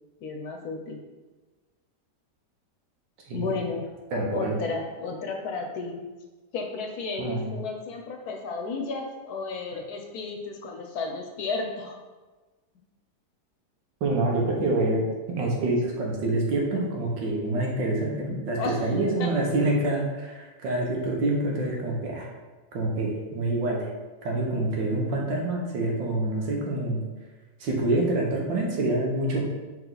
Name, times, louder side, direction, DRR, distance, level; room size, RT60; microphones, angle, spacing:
voice 1, 0.2-1.0 3.3-3.9 4.3-6.1 6.5-12.0 18.6-18.8 19.2-19.3, left 4 dB, 65° left, 2 dB, 1.2 m, -33 dB
voice 2, 4.1-4.6 7.2-7.6 14.0-22.3 22.7-23.9 24.2-27.0 27.6-29.4, right 2 dB, 90° right, -1 dB, 1.9 m, -26 dB
5.2 x 4.6 x 4.0 m, 1.2 s
omnidirectional pair, 1.9 m